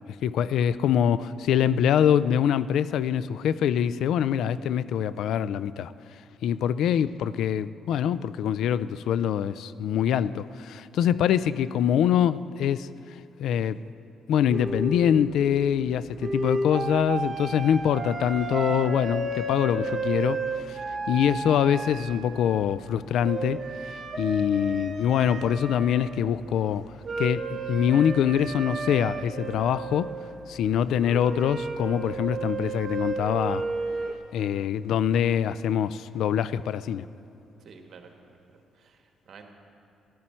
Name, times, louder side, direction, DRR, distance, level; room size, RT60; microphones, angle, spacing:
voice 1, 0.2-5.9 6.4-12.9 13.4-13.8 14.3-20.8 21.1-23.6 24.2-26.9 27.2-30.1 30.5-33.6 34.3-37.1, left 9 dB, 80° left, 16 dB, 0.3 m, -24 dB
voice 2, 11.2-11.6 37.6-38.3 38.7-39.5, right 5 dB, 60° right, 4 dB, 1.4 m, -50 dB
sound 1, 14.5-34.1, right 3 dB, 45° right, 0.9 m, -33 dB
14.0 x 12.0 x 4.4 m, 2.7 s
cardioid pair, 90°, 0 cm